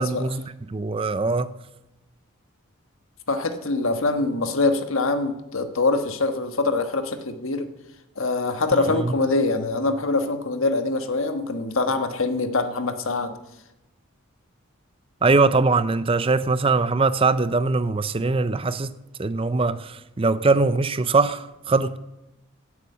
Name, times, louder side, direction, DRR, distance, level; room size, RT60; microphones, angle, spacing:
voice 1, 0.0-1.5 8.7-9.1 15.2-18.9 19.2-22.0, right 3 dB, 25° right, 0.4 m, -22 dB
voice 2, 3.3-7.7 8.2-13.3, left 3 dB, 70° left, 1.3 m, -24 dB
17.0 x 8.4 x 6.8 m
head